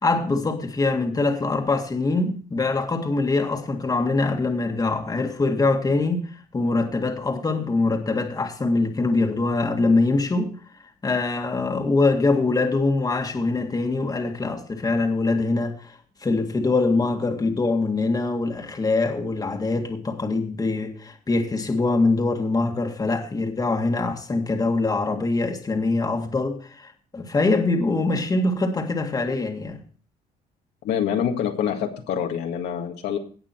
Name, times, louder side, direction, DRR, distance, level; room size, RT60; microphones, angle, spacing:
voice 1, 0.0-6.2 6.5-10.5 11.0-29.8, left 3 dB, 20° left, 1.9 m, -23 dB
voice 2, 30.8-33.2, left 8 dB, 80° left, 1.9 m, -26 dB
18.0 x 6.1 x 4.4 m
cardioid pair, 110°, 17 cm